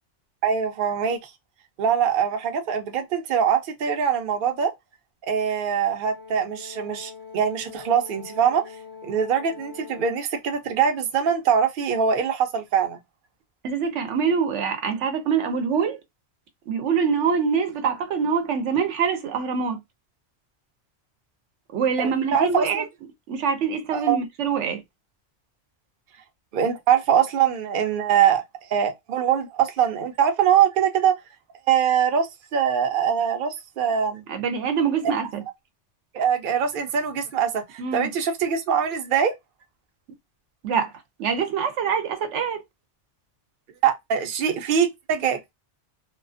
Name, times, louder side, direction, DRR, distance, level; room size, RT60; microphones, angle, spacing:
voice 1, 0.4-1.3 1.8-4.7 5.3-8.6 9.0-13.0 22.0-22.9 23.9-24.2 26.5-28.4 28.7-31.2 31.7-34.2 36.1-39.3 43.8-45.5, right 8 dB, 55° right, 0.7 m, -23 dB
Brass instrument, 6.0-10.3, left 6 dB, 20° left, 0.3 m, -43 dB
voice 2, 13.6-16.0 16.7-19.8 21.7-22.8 23.3-24.8 34.3-35.4 37.8-38.1 40.6-40.9 41.2-42.6, right 6 dB, 80° right, 0.9 m, -24 dB
2.4 x 2.3 x 2.4 m
omnidirectional pair, 1.2 m